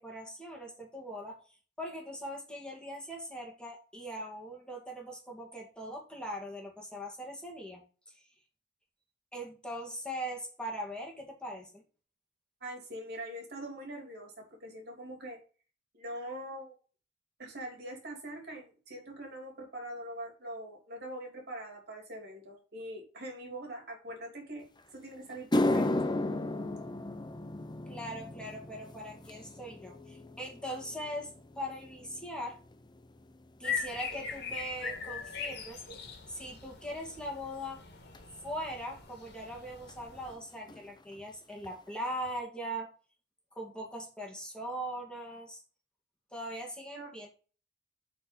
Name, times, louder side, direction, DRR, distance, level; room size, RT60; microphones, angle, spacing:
voice 1, 0.0-1.4 1.8-7.8 9.3-11.8 27.9-32.6 33.6-37.8 38.4-42.9 43.6-45.6 46.3-47.3, equal, 5° left, -1 dB, 2.1 m, -40 dB
voice 2, 12.6-15.4 15.9-16.8 17.4-24.7 24.9-26.1 46.9-47.1, right 1 dB, 60° right, 1 dB, 3.1 m, -43 dB
sound 1, 24.8-24.9 25.3-33.8 34.1-34.5 35.3-35.4 38.1-38.2 39.9-40.0 40.2-40.4 40.7-41.2 41.6-41.7 42.3-42.4, left 1 dB, 25° left, 0.7 m, -35 dB
sound 2, 33.6-40.3, left 6 dB, 65° left, 2.1 m, -41 dB
8.2 x 4.4 x 5.5 m, 0.36 s
head